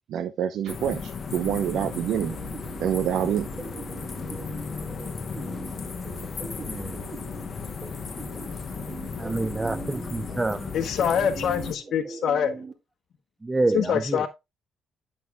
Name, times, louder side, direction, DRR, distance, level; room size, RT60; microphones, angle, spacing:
voice 1, 0.1-2.4 2.8-3.5, right 9 dB, 75° right, 0.8 m, -26 dB
sound 1, 0.7-11.7, left 5 dB, 45° left, 1.0 m, -35 dB
sound 2, 1.5-12.7, right 4 dB, 35° right, 2.1 m, -42 dB
voice 2, 9.2-10.7 13.4-14.3, right 2 dB, 15° right, 0.3 m, -27 dB
voice 3, 10.7-12.6 13.7-14.3, left 8 dB, 65° left, 1.2 m, -24 dB
10.5 x 6.5 x 2.3 m
cardioid pair, 90°, 0 cm